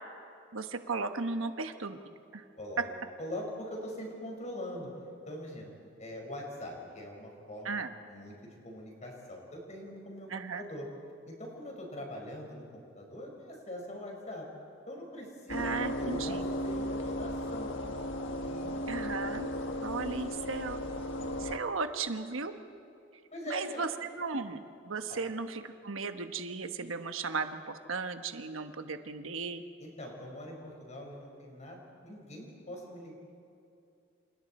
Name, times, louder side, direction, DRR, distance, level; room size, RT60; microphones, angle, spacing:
voice 1, 0.5-2.0 2.3-2.4 7.6-7.9 10.3-10.6 15.5-16.4 18.9-19.5 19.8-20.8 21.4-22.5 23.5-29.6, right 4 dB, 80° right, 7 dB, 1.2 m, -36 dB
voice 2, 2.6-2.9 3.2-4.9 5.3-5.7 6.0-10.9 11.3-14.5 14.9-15.7 16.0-17.7 18.4-18.8 23.3-23.8 25.1-25.2 29.8-33.1, left 1 dB, 35° left, 0 dB, 5.1 m, -43 dB
sound 1, 15.5-21.6, left 1 dB, 65° left, 1.5 m, -35 dB
28.0 x 28.0 x 4.4 m, 2.6 s
head